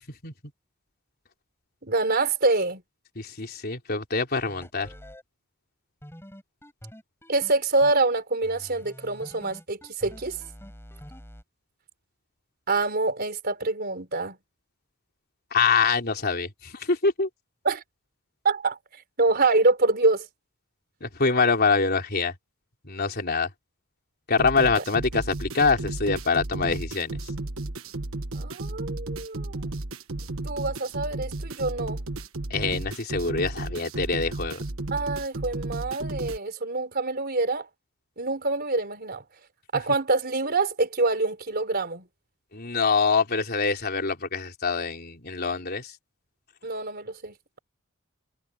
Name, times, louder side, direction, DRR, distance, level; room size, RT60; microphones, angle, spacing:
voice 1, 1.8-2.8 7.3-10.4 12.7-14.4 17.6-17.8 18.4-18.8 19.2-20.3 28.3-29.6 30.2-32.0 34.9-37.7 38.2-39.2 39.7-42.1 46.6-47.6, right 3 dB, 50° right, 4.1 m, -26 dB
voice 2, 3.2-4.9 15.5-17.3 21.0-22.3 22.8-23.5 24.3-27.2 32.5-34.6 42.5-46.0, left 4 dB, 50° left, 3.9 m, -25 dB
sound 1, 4.3-5.2 6.0-8.0 8.4-11.4, equal, 10° left, 7.0 m, -46 dB
sound 2, 24.4-36.4, right 2 dB, 75° right, 1.4 m, -34 dB
head